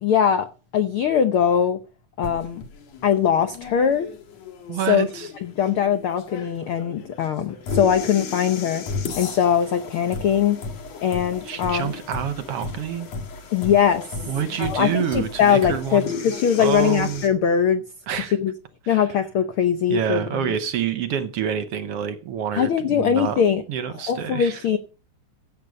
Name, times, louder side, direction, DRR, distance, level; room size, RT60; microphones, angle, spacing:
voice 1, 0.0-1.8 2.2-2.6 3.0-4.1 4.9-5.1 5.4-10.6 11.0-11.9 13.5-14.2 14.6-17.8 18.2-18.5 18.9-20.5 22.5-23.6 24.1-24.8, left 8 dB, 85° left, 1.2 m, -21 dB
Empty Coffee Machine, 2.2-17.3, left 4 dB, 60° left, 2.8 m, -35 dB
voice 2, 4.7-5.3 11.4-13.1 14.3-16.1 16.6-17.2 18.1-18.3 18.8-19.0 19.9-23.4 23.7-24.6, right 8 dB, 65° right, 1.5 m, -27 dB
16.0 x 8.3 x 5.2 m
omnidirectional pair, 3.6 m